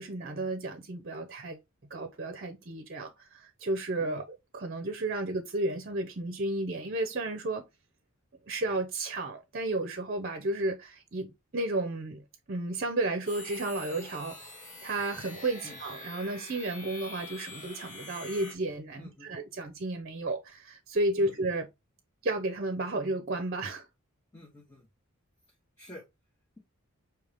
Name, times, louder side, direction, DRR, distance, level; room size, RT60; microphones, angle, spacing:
voice 1, 0.0-1.6 1.9-4.2 4.5-7.6 8.5-12.2 12.5-14.4 14.8-21.7 22.2-23.9, right 2 dB, 45° right, 0.7 m, -32 dB
sound 1, 13.3-18.5, left 2 dB, 35° left, 1.2 m, -45 dB
voice 2, 19.0-19.3 21.2-21.3 24.3-24.9 25.8-26.0, left 1 dB, 15° left, 0.9 m, -49 dB
5.3 x 2.9 x 3.4 m
head